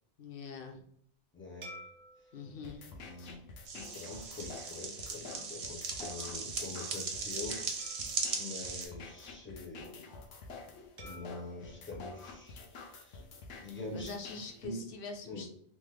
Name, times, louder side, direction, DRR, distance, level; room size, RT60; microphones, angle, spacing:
voice 1, 0.2-0.8 2.3-2.9 13.9-15.5, left 4 dB, 60° left, 3 dB, 0.7 m, -44 dB
voice 2, 1.3-1.7 2.9-3.4 3.7-7.6 8.4-10.1 11.0-13.2 13.6-14.1 14.6-14.9 15.2-15.4, left 2 dB, 15° left, -3 dB, 0.4 m, -45 dB
sound 1, 1.6-4.3 4.9-5.1 7.8-9.6 11.0-13.3, right 1 dB, 35° right, 0.5 m, -55 dB
sound 2, 2.6-14.7, left 3 dB, 90° left, 1.0 m, -49 dB
sound 3, 3.6-8.9, right 4 dB, 70° right, 0.9 m, -38 dB
3.0 x 2.1 x 3.2 m, 0.65 s
omnidirectional pair, 1.2 m